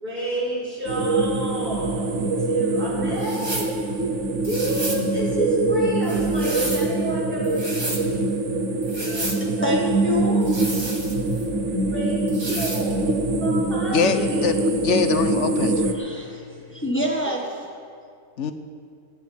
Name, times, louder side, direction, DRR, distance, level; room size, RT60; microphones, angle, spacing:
voice 1, 0.0-3.6 4.4-7.5 9.0-9.2 9.6-9.8 11.8-12.2 12.5-13.1 13.4-14.5 17.1-17.3, right 1 dB, 50° right, -6 dB, 5.2 m, -30 dB
sound 1, 0.9-15.9, right 2 dB, 80° right, 1.3 m, -24 dB
sound 2, 3.2-3.8 4.4-5.1 6.0-6.9 7.4-8.1 8.8-9.4 10.4-11.4 12.3-12.9, right 1 dB, 20° right, 1.4 m, -32 dB
voice 2, 9.6-10.5 15.8-17.4, left 1 dB, 10° left, -2 dB, 1.6 m, -26 dB
voice 3, 13.9-15.8 18.4-18.5, left 5 dB, 75° left, 9 dB, 1.1 m, -23 dB
29.0 x 10.5 x 3.5 m, 2.2 s
omnidirectional pair, 1.2 m